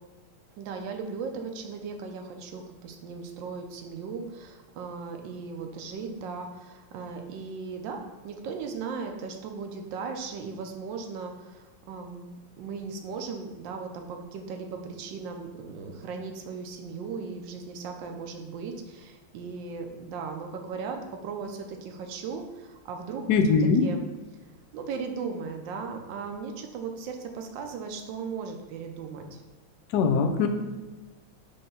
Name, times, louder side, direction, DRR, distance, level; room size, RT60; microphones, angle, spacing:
voice 1, 0.6-23.4 23.8-24.0 24.7-29.4, right 5 dB, 70° right, 4 dB, 1.3 m, -37 dB
voice 2, 23.3-23.9 29.9-30.5, left 5 dB, 70° left, 5 dB, 1.0 m, -21 dB
5.5 x 3.4 x 5.4 m, 1.2 s
omnidirectional pair, 2.3 m